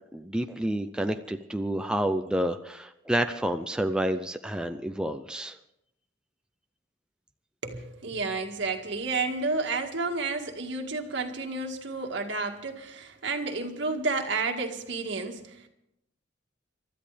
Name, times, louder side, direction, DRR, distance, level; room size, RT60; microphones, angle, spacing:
voice 1, 0.1-5.6, right 1 dB, 5° right, 0.6 m, -29 dB
voice 2, 7.6-15.7, right 3 dB, 65° right, 2.0 m, -31 dB
29.0 x 13.0 x 3.4 m
head